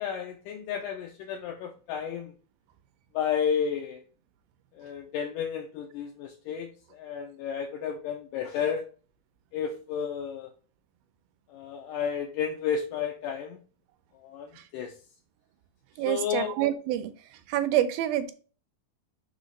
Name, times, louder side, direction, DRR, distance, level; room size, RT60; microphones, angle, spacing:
voice 1, 0.0-2.3 3.1-4.0 4.7-8.9 9.5-10.5 11.5-13.6 14.2-14.9 16.1-16.6, left 7 dB, 80° left, 2.0 m, -32 dB
voice 2, 16.0-17.1 17.5-18.3, right 12 dB, 80° right, 2.4 m, -27 dB
6.4 x 3.0 x 5.3 m
omnidirectional pair, 4.3 m